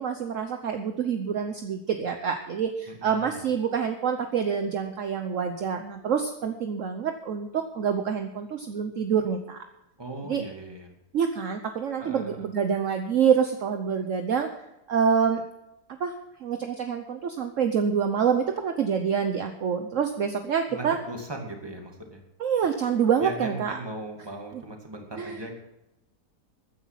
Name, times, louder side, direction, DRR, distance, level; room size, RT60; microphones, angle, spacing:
voice 1, 0.0-9.6 10.2-10.4 11.1-14.5 14.9-15.4 16.0-16.1 16.4-21.0 22.4-23.8 25.2-25.4, right 7 dB, 55° right, 6 dB, 1.2 m, -26 dB
voice 2, 2.9-3.4 10.0-10.9 12.0-12.5 20.7-22.2 23.2-25.5, right 1 dB, 15° right, 2 dB, 2.2 m, -38 dB
14.5 x 9.9 x 5.8 m, 0.89 s
omnidirectional pair, 1.7 m